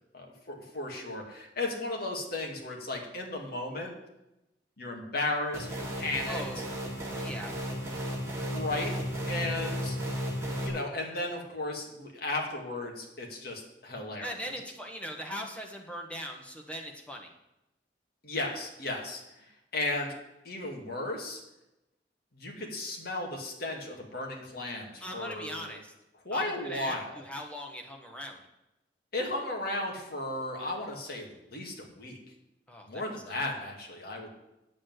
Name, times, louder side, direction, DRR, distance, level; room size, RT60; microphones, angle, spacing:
voice 1, 0.0-3.9 4.8-6.4 8.5-8.9 9.3-10.0 10.4-14.3 18.2-19.2 19.7-20.1 20.4-21.4 22.3-25.8 26.2-27.2 29.1-32.2 32.9-34.3, left 2 dB, 60° left, 1 dB, 2.3 m, -35 dB
sound 1, 5.5-10.7, equal, 15° right, 2.5 m, -34 dB
voice 2, 6.3-6.6 7.2-7.5 14.2-17.3 25.0-25.9 26.3-28.4 32.7-33.4, equal, 5° left, 1 dB, 1.4 m, -40 dB
8.5 x 7.4 x 7.9 m, 0.91 s
head